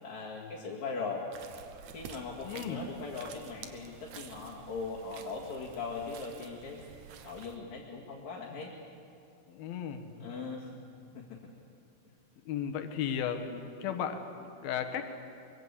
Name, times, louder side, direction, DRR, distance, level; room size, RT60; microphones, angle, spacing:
voice 1, 0.0-1.2 1.9-8.7 10.2-10.7 11.1-11.4, left 4 dB, 50° left, -6 dB, 3.0 m, -40 dB
sound 1, 1.3-7.6, right 7 dB, 90° right, 1.6 m, -50 dB
voice 2, 2.4-2.8 9.5-10.6 12.5-15.2, left 8 dB, 65° left, 8 dB, 2.9 m, -36 dB
23.5 x 23.0 x 8.4 m, 2.5 s
omnidirectional pair, 5.0 m